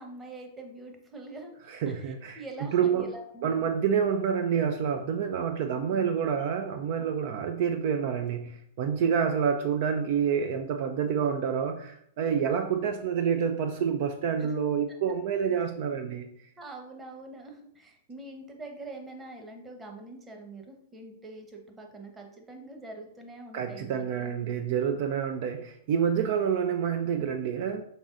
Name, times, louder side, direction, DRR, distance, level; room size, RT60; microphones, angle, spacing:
voice 1, 0.0-1.5 1.8-3.5 5.8-6.0 14.4-14.6 16.6-24.7, right 2 dB, 15° right, 3 dB, 1.0 m, -44 dB
voice 2, 1.8-2.4 2.7-3.1 3.4-16.3 23.5-27.8, right 7 dB, 55° right, 6 dB, 0.4 m, -28 dB
5.3 x 3.8 x 2.5 m, 0.68 s
figure-of-eight pair, 105°, 0 cm